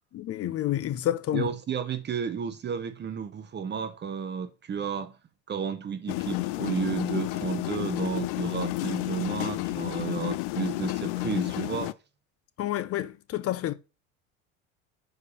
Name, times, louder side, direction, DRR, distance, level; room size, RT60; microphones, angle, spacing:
voice 1, 0.1-1.5 12.6-13.7, left 12 dB, 40° left, 0.7 m, -29 dB
voice 2, 1.3-5.2 5.5-11.9, right 7 dB, 30° right, 0.8 m, -32 dB
sound 1, 6.1-11.9, left 19 dB, 75° left, 0.5 m, -31 dB
5.4 x 4.8 x 5.3 m
supercardioid pair, 95°, 36 cm